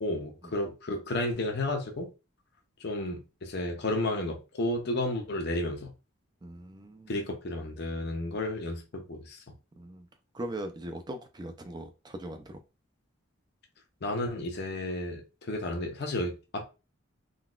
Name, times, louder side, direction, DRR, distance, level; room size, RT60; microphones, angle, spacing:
voice 1, 0.0-2.1 2.8-5.9 7.1-9.4 14.0-16.6, left 1 dB, 50° left, 0.6 m, -32 dB
voice 2, 6.4-7.2 9.8-10.1 10.3-12.6, right 1 dB, 20° right, 0.4 m, -40 dB
3.8 x 2.3 x 2.3 m
head